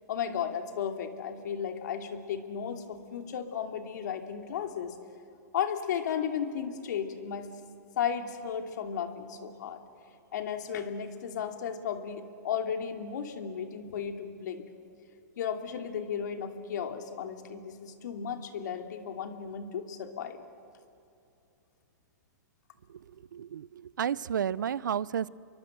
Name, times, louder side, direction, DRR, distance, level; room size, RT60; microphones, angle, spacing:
voice 1, 0.1-4.9 5.5-7.5 8.0-9.8 10.3-14.6 15.4-20.4, left 8 dB, 70° left, 6 dB, 2.7 m, -34 dB
voice 2, 22.9-25.3, right 8 dB, 85° right, 21 dB, 0.6 m, -32 dB
28.0 x 23.0 x 7.8 m, 2.6 s
hypercardioid pair, 135°, 10 cm